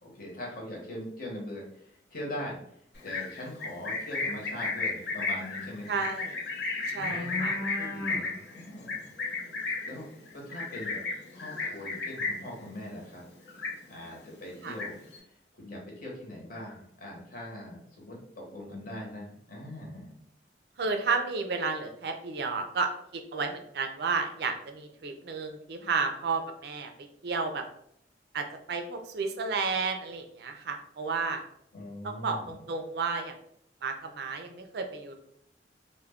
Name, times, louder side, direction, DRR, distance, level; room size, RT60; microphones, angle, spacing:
voice 1, 0.0-2.6 3.0-6.0 7.0-9.1 9.8-11.0 11.3-13.2 13.9-15.0 15.6-20.1 31.7-32.5, left 1 dB, 50° left, -2 dB, 1.0 m, -41 dB
Livestock farm animals working animals, 2.9-12.6 12.9-13.2 13.5-14.2 14.5-15.2, left 3 dB, 75° left, 0.7 m, -33 dB
voice 2, 5.9-6.4 6.9-7.6 9.4-9.5 14.6-14.8 20.8-26.9 27.2-27.6 28.3-31.4 32.0-33.3 33.8-35.1, right 4 dB, 65° right, 5 dB, 0.4 m, -32 dB
2.3 x 2.2 x 3.4 m, 0.69 s
head